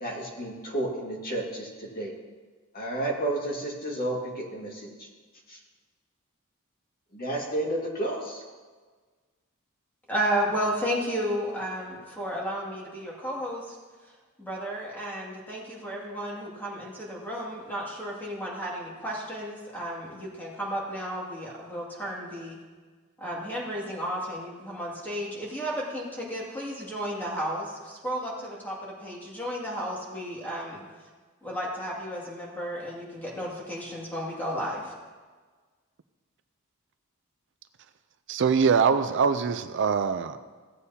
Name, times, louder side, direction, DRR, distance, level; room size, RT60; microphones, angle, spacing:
voice 1, 0.0-1.7 2.0-2.1 2.7-4.7 7.1-8.4, right 1 dB, 45° left, -2 dB, 2.0 m, -31 dB
voice 2, 10.1-13.8 14.0-14.1 14.4-22.6 23.2-30.8 31.4-34.9, equal, 10° left, -4 dB, 2.3 m, -33 dB
voice 3, 38.3-40.4, right 6 dB, 60° right, 10 dB, 0.4 m, -23 dB
16.5 x 8.1 x 2.8 m, 1.4 s
head